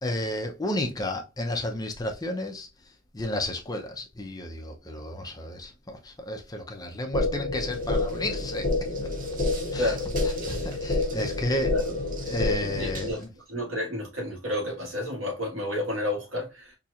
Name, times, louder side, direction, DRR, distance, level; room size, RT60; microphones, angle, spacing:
voice 1, 0.0-2.7 3.1-8.7 9.7-9.9 10.4-11.7 12.3-13.3, left 1 dB, 20° left, 0.7 m, -32 dB
sound 1, 7.1-13.1, left 2 dB, 45° left, 0.9 m, -28 dB
sound 2, 7.5-13.2, right 3 dB, 40° right, 1.0 m, -45 dB
voice 2, 9.7-10.1 11.7-11.9 12.6-13.2 13.5-16.8, left 1 dB, 75° right, 1.8 m, -31 dB
4.3 x 2.9 x 2.5 m
head